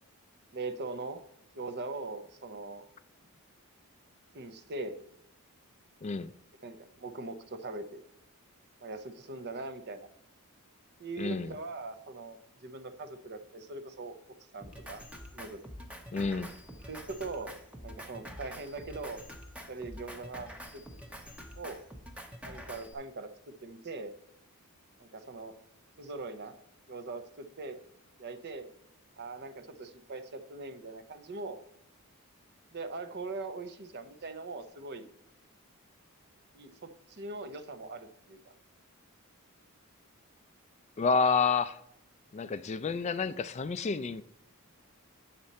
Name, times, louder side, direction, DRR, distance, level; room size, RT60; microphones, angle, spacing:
voice 1, 0.5-1.2 1.5-2.9 4.3-5.0 6.6-8.0 8.8-10.1 11.0-14.2 14.5-15.0 15.3-15.6 16.8-17.5 17.8-19.2 19.7-20.8 21.6-21.8 22.4-23.3 23.6-24.1 25.0-25.6 26.0-26.5 26.9-27.8 28.2-28.7 29.2-31.6 32.7-35.1 36.5-38.5, right 3 dB, 50° right, 0.8 m, -41 dB
voice 2, 6.0-6.3 11.2-11.5 16.1-16.5 41.0-41.8 42.3-44.2, left 5 dB, 30° left, 0.3 m, -29 dB
Drum kit, 14.6-22.9, equal, 5° right, 0.8 m, -46 dB
8.7 x 6.6 x 4.1 m
head